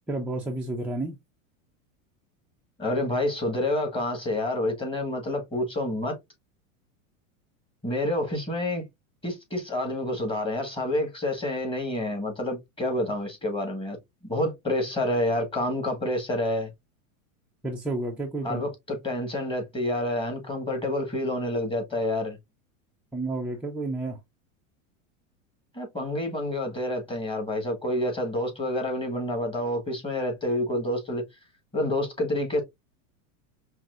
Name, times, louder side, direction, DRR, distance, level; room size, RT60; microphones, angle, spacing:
voice 1, 0.1-1.2 17.6-18.6 23.1-24.2, right 2 dB, 5° right, 0.3 m, -31 dB
voice 2, 2.8-6.2 7.8-8.8 9.2-14.0 14.2-16.7 18.4-22.4 25.7-31.2 31.7-32.6, left 1 dB, 15° left, 1.6 m, -28 dB
5.7 x 2.5 x 2.5 m
supercardioid pair, 125°, 41 cm